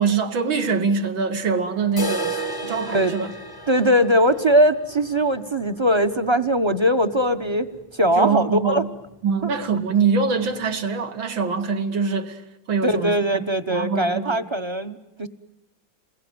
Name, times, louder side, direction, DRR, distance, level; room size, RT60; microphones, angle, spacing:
voice 1, 0.0-3.3 8.2-8.9 9.2-12.4 12.7-14.5, right 5 dB, 85° right, 2.5 m, -24 dB
sound 1, 2.0-7.8 8.1-8.2 8.5-8.6 9.1-9.2 10.1-10.2, right 3 dB, 15° left, 0.8 m, -34 dB
voice 2, 2.6-3.1 3.7-8.8 12.8-15.3, equal, 25° right, 0.7 m, -21 dB
29.5 x 21.5 x 9.3 m
omnidirectional pair, 2.1 m